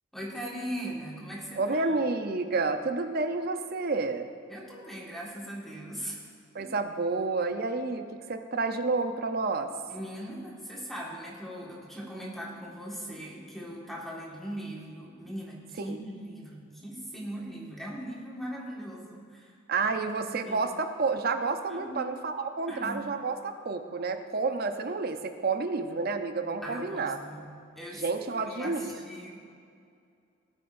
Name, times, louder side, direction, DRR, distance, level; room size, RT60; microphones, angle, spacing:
voice 1, 0.1-1.9 4.5-6.2 6.6-6.7 9.9-19.6 20.2-20.7 21.7-22.1 22.7-23.0 26.6-27.5 27.7-28.0 28.3-29.4, equal, ahead, -4 dB, 1.6 m, -40 dB
voice 2, 1.6-4.3 6.5-9.7 15.9-16.0 19.7-27.2 27.9-28.9, right 3 dB, 50° right, 8 dB, 0.6 m, -30 dB
17.5 x 9.1 x 2.6 m, 2.4 s
head